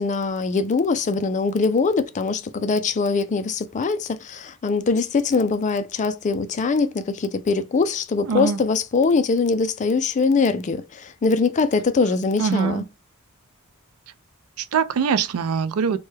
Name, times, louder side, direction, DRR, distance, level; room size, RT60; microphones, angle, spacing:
voice 1, 0.0-12.8, left 4 dB, 35° left, 0.4 m, -22 dB
voice 2, 8.3-8.6 12.4-12.8 14.6-16.0, right 6 dB, 80° right, 0.4 m, -23 dB
3.1 x 2.2 x 3.2 m
head